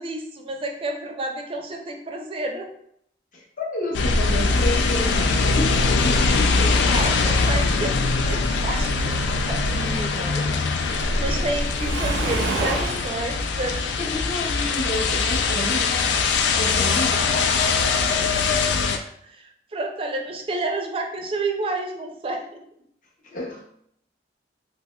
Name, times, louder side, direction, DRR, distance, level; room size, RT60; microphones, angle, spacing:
voice 1, 0.0-2.7 6.9-9.2 9.5-10.5 10.8-13.8 16.7-16.8 18.8-22.6, right 2 dB, 30° right, 3 dB, 0.4 m, -30 dB
voice 2, 3.3-5.2 5.4-6.3 6.6-7.1 14.0-16.0 16.5-17.2 18.1-18.4 23.3-23.6, left 1 dB, 45° left, -1 dB, 0.7 m, -30 dB
sound 1, 3.9-19.0, left 4 dB, 75° left, 0.3 m, -22 dB
Waves surf, 11.7-13.2, right 3 dB, 85° right, 0.5 m, -27 dB
3.4 x 2.8 x 2.2 m, 0.70 s
head